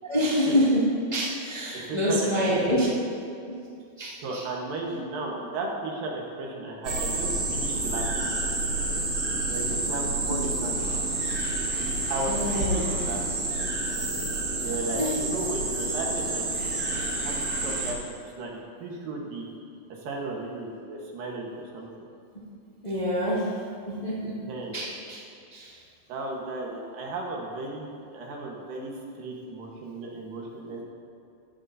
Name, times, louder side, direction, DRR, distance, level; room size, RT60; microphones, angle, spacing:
voice 1, 0.0-2.9 4.0-4.4 12.2-13.0 15.0-15.2 22.8-23.5 23.9-24.4 24.7-25.2 25.5-25.8, equal, 15° left, -9 dB, 1.3 m, -26 dB
voice 2, 1.7-2.9 4.2-8.1 9.5-10.8 12.1-12.3 12.7-13.6 14.6-17.3 17.6-19.5 19.9-22.0 24.5-24.8 26.1-30.8, right 2 dB, 75° right, -1 dB, 3.0 m, -35 dB
sound 1, 6.8-17.9, right 2 dB, 30° right, 1.8 m, -29 dB
15.5 x 11.5 x 2.7 m, 2.5 s
omnidirectional pair, 4.0 m